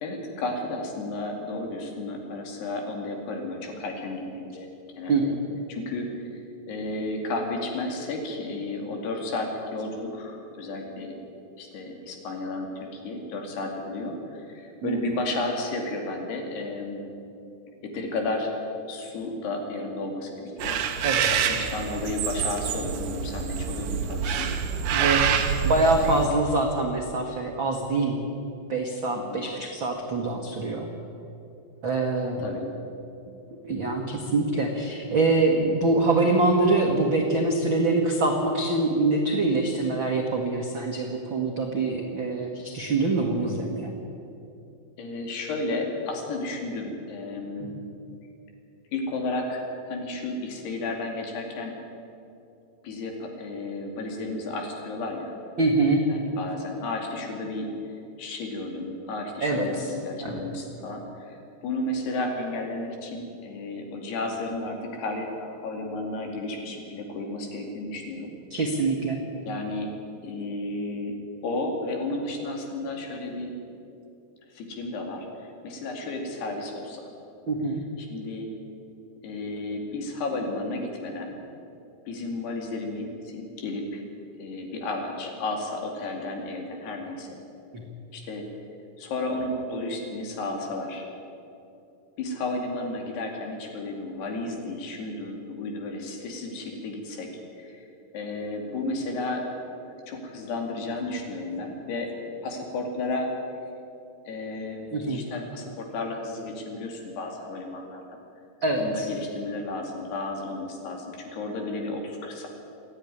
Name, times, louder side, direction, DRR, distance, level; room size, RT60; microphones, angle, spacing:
voice 1, 0.0-4.7 5.0-5.3 5.7-11.1 11.6-17.1 17.8-18.5 18.9-24.5 24.8-25.3 25.8-26.2 29.2-29.5 32.4-32.7 45.0-47.8 48.9-51.8 52.8-55.3 56.1-57.7 58.2-61.4 61.6-68.3 69.4-69.9 70.2-71.2 71.4-73.5 74.5-75.3 75.6-77.1 78.0-78.5 79.2-81.3 82.1-84.0 84.4-87.3 88.1-88.5 89.0-91.1 92.2-97.3 97.6-97.9 98.1-99.5 100.1-102.1 102.4-103.3 104.3-108.0 108.8-112.5, left 2 dB, 70° left, 2 dB, 4.5 m, -33 dB
voice 2, 5.1-5.5 14.8-15.0 21.0-21.5 24.9-28.2 28.7-30.9 31.8-32.4 33.7-43.9 55.6-56.0 59.4-59.9 60.2-60.4 68.5-69.2 77.5-77.8 87.7-87.8 104.9-105.2 108.6-109.1, right 2 dB, 85° right, 1 dB, 1.1 m, -24 dB
sound 1, 20.6-26.3, right 7 dB, 65° right, 2.2 m, -27 dB
27.0 x 9.9 x 9.9 m, 2.7 s
omnidirectional pair, 4.9 m